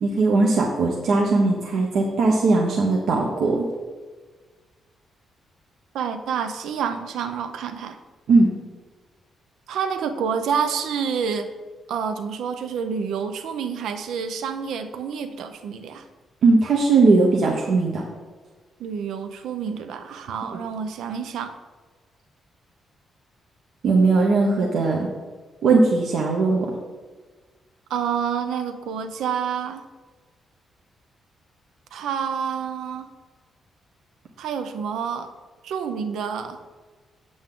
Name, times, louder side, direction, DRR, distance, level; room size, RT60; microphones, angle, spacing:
voice 1, 0.0-3.7 8.3-8.5 16.4-18.0 20.5-20.6 23.8-25.1 25.6-26.7, right 3 dB, 65° right, -1 dB, 1.0 m, -19 dB
voice 2, 5.9-8.0 9.7-11.5 11.9-16.0 18.8-21.6 27.9-29.8 31.9-33.1 34.4-35.3 35.6-36.6, right 7 dB, 85° right, 8 dB, 0.7 m, -28 dB
7.9 x 7.9 x 3.8 m, 1.4 s
cardioid pair, 165°, 0 cm